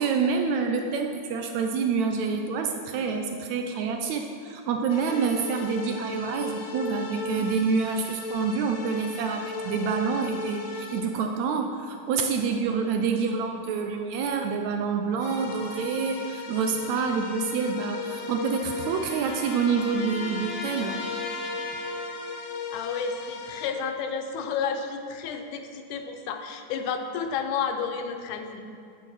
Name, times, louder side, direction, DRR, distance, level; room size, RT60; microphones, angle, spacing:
voice 1, 0.0-21.0, right 5 dB, 80° right, 4 dB, 1.7 m, -27 dB
sound 1, 4.9-11.0 15.2-23.7, left 3 dB, 65° left, 1.6 m, -37 dB
sound 2, 17.7-22.5, left 2 dB, 50° left, 2.0 m, -38 dB
voice 2, 22.7-28.6, left 6 dB, 80° left, 6 dB, 2.2 m, -31 dB
9.9 x 5.6 x 6.1 m, 2.4 s
omnidirectional pair, 3.6 m